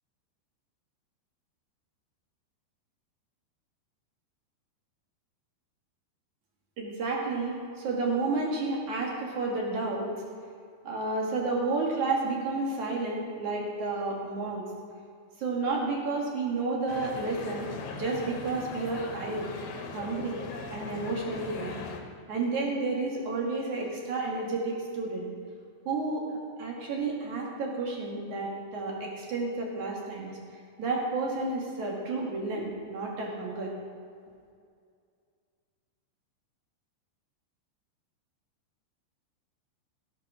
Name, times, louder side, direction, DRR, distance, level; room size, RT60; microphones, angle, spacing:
voice 1, 6.8-10.1 10.8-14.6 15.4-19.5 19.9-20.4 20.7-21.8 22.3-25.3 25.8-30.4 30.8-33.7, right 3 dB, 50° right, -2 dB, 2.9 m, -31 dB
sound 1, 16.9-22.0, left 5 dB, 65° left, 2.8 m, -40 dB
16.5 x 8.2 x 6.3 m, 2.3 s
omnidirectional pair, 5.1 m